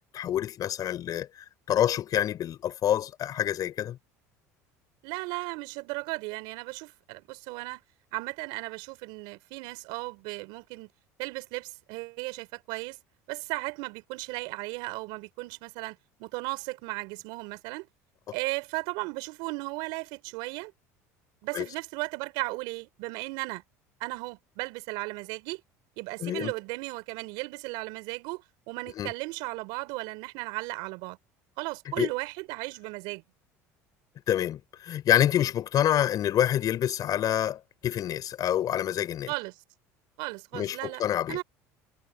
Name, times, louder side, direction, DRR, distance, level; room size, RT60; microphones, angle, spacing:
voice 1, 0.1-1.3 1.7-4.0 21.5-21.7 26.2-26.5 29.0-29.1 32.0-32.1 34.3-39.3 40.5-41.4, left 11 dB, 50° left, 5.4 m, -27 dB
voice 2, 5.0-7.8 8.1-10.9 11.2-13.0 13.3-17.9 18.3-20.7 21.4-23.6 24.0-25.6 26.0-31.2 31.6-33.2 39.3-39.6 40.2-41.0 41.3-41.4, right 25 dB, 70° right, 4.1 m, -36 dB
hypercardioid pair, 80°, 8 cm